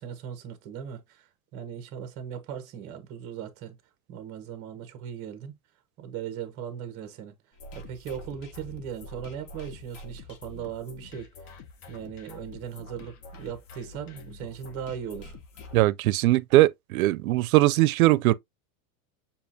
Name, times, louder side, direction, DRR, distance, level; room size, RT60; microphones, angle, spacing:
voice 1, 0.0-3.8 4.1-5.5 6.0-7.3 7.7-11.3 11.9-15.7, right 8 dB, 35° right, 1.2 m, -38 dB
sound 1, 7.5-15.9, left 2 dB, 35° left, 0.8 m, -46 dB
voice 2, 15.7-18.3, right 17 dB, 90° right, 0.5 m, -20 dB
7.0 x 2.5 x 2.7 m
supercardioid pair, 160°, 41 cm